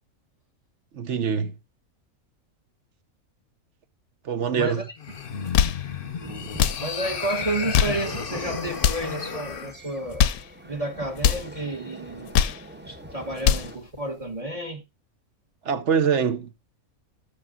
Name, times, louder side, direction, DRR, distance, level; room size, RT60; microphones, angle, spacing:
voice 1, 0.9-1.5 4.2-4.9 15.6-16.5, right 7 dB, 60° right, 1.2 m, -24 dB
voice 2, 4.5-4.9 6.8-10.3 10.6-12.3 12.8-14.8, right 2 dB, 25° right, 1.4 m, -31 dB
sound 1, 5.0-9.7, left 6 dB, 45° left, 1.0 m, -33 dB
sound 2, 5.3-5.9 6.5-6.9 7.6-8.1 8.7-9.1 10.0-10.5 11.2-11.5 12.1-12.7 13.2-13.7, left 9 dB, 90° left, 1.1 m, -23 dB
sound 3, 6.2-13.7, equal, 10° right, 0.9 m, -43 dB
18.0 x 6.2 x 2.4 m
omnidirectional pair, 1.5 m